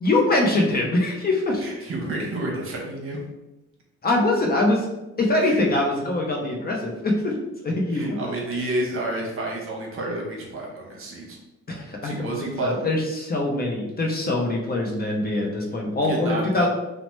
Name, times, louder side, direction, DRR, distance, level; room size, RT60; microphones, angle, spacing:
voice 1, 0.0-1.7 4.0-4.9 5.2-7.3 7.6-8.2 11.7-16.7, left 2 dB, 30° left, 0 dB, 0.6 m, -23 dB
voice 2, 1.6-3.2 5.4-5.6 7.9-11.4 12.0-12.9 16.0-16.7, right 2 dB, 45° right, -1 dB, 0.9 m, -30 dB
2.9 x 2.1 x 3.0 m, 0.97 s
cardioid pair, 90°, 30 cm